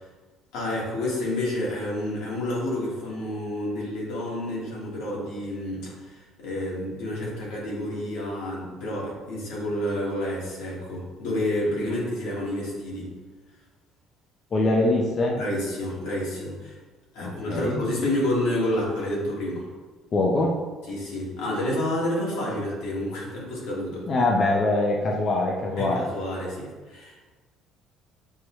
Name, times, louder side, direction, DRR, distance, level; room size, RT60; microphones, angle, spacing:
voice 1, 0.5-13.1 15.3-16.8 17.1-19.7 20.9-24.1 25.8-27.3, left 1 dB, 90° left, -4 dB, 1.4 m, -29 dB
voice 2, 14.5-15.3 17.2-17.8 20.1-20.6 24.1-26.0, left 2 dB, 40° left, -1 dB, 0.5 m, -23 dB
6.3 x 2.1 x 2.9 m, 1.3 s
cardioid pair, 115°, 0 cm